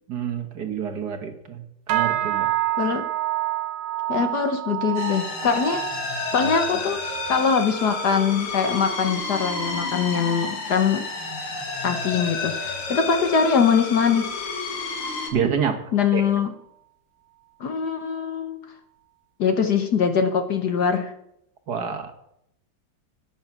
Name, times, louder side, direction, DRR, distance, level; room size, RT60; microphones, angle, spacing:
voice 1, 0.1-2.5 15.3-15.8 16.1-16.3 21.7-22.1, right 7 dB, 55° right, 5 dB, 1.6 m, -27 dB
sound 1, 1.9-11.4 11.7-12.2 12.6-12.9 13.5-13.6, right 15 dB, 75° right, 1.5 m, -30 dB
voice 2, 4.1-5.8 6.3-7.0 7.3-11.1 11.8-14.3 15.9-16.5 17.6-18.6 19.4-21.1, left 6 dB, 55° left, 8 dB, 1.4 m, -22 dB
sound 2, 4.9-15.3, left 4 dB, 90° left, 2.8 m, -31 dB
12.0 x 9.6 x 6.0 m, 0.76 s
omnidirectional pair, 2.3 m